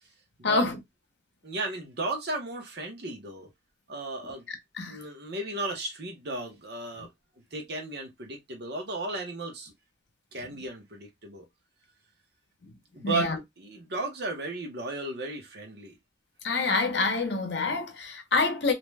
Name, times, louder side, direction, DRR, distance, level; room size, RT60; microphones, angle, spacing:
voice 1, 0.4-0.8 4.5-5.0 13.0-13.4 16.4-18.7, left 3 dB, 60° left, 0.7 m, -27 dB
voice 2, 1.4-3.5 3.9-4.4 4.9-7.1 7.5-9.7 10.3-11.4 12.9-16.0, right 2 dB, 55° right, 0.9 m, -35 dB
2.6 x 2.2 x 3.2 m
head